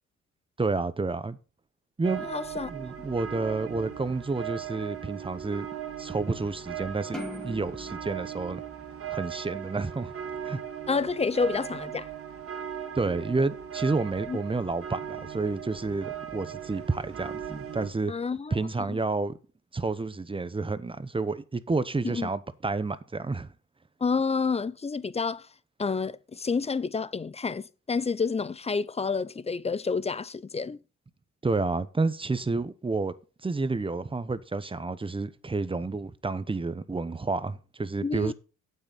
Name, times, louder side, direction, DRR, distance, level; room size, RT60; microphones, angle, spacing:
voice 1, 0.6-1.4 2.0-2.3 2.7-5.7 6.0-7.2 7.4-8.6 9.1-10.1 10.4-10.6 12.9-18.1 18.5-19.4 19.7-23.5 31.4-33.1 33.4-38.3, right 3 dB, 15° right, 0.9 m, -30 dB
sound 1, 2.0-17.9, right 9 dB, 50° right, 2.1 m, -38 dB
voice 2, 2.2-2.7 10.9-12.1 14.3-14.4 18.1-18.6 18.9-19.0 22.0-22.3 24.0-25.5 25.8-30.8 38.0-38.3, left 4 dB, 20° left, 0.5 m, -29 dB
sound 2, 7.1-9.7, left 2 dB, ahead, 2.5 m, -42 dB
8.9 x 7.9 x 4.1 m
cardioid pair, 90°, 30 cm